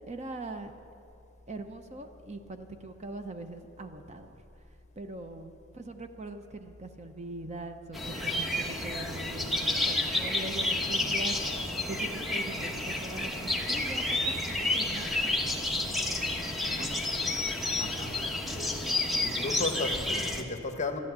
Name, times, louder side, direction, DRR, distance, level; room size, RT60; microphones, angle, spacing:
voice 1, 0.1-0.7 1.5-4.4 5.0-11.4 11.9-15.5 16.8-17.4, right 2 dB, 35° right, 7 dB, 0.8 m, -42 dB
sound 1, 7.9-20.4, left 2 dB, ahead, 1.1 m, -30 dB
voice 2, 17.8-18.7 19.2-21.0, left 3 dB, 35° left, 6 dB, 1.1 m, -35 dB
13.0 x 11.5 x 8.1 m, 2.8 s
head